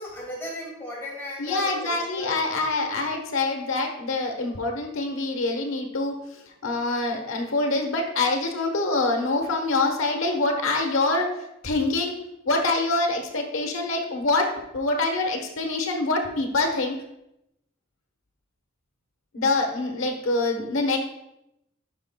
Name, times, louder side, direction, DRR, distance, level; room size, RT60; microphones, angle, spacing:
voice 1, 0.0-2.4, left 1 dB, 10° left, -5 dB, 2.3 m, -36 dB
voice 2, 1.4-11.3 11.6-12.1 12.4-17.0 19.3-21.0, left 2 dB, 80° left, 2 dB, 1.2 m, -25 dB
9.7 x 5.6 x 2.2 m, 0.85 s
head